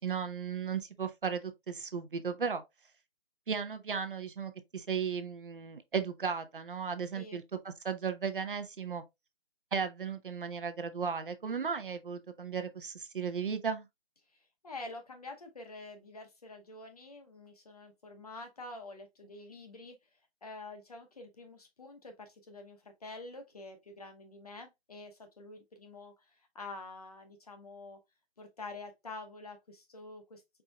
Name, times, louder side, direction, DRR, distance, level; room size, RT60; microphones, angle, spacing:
voice 1, 0.0-2.6 3.5-9.0 9.7-13.9, right 6 dB, 50° right, 0.8 m, -35 dB
voice 2, 14.3-20.0 20.4-28.0 28.4-30.6, left 2 dB, 35° left, 0.8 m, -47 dB
4.5 x 4.1 x 2.2 m
figure-of-eight pair, 165°, 33 cm